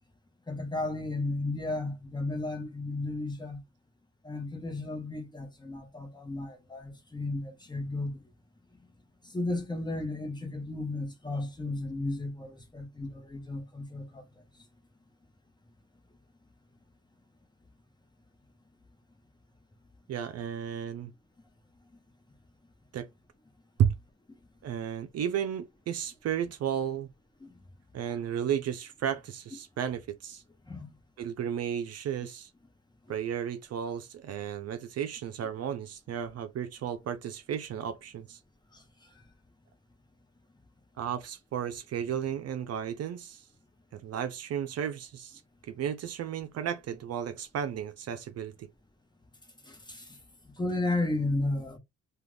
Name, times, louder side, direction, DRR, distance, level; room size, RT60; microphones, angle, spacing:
voice 1, 0.5-3.6 4.2-8.2 9.2-14.2 27.4-27.5 30.7-30.9 33.1-33.2 38.7-38.8 49.6-50.2 50.6-51.8, left 2 dB, 15° left, 0.9 m, -34 dB
voice 2, 20.1-21.1 22.9-23.1 23.8-23.9 24.6-27.1 27.9-30.4 31.2-32.5 33.1-38.4 41.0-43.4 43.9-48.7, right 9 dB, 55° right, 0.5 m, -33 dB
2.4 x 2.4 x 3.3 m
cardioid pair, 90°, 30 cm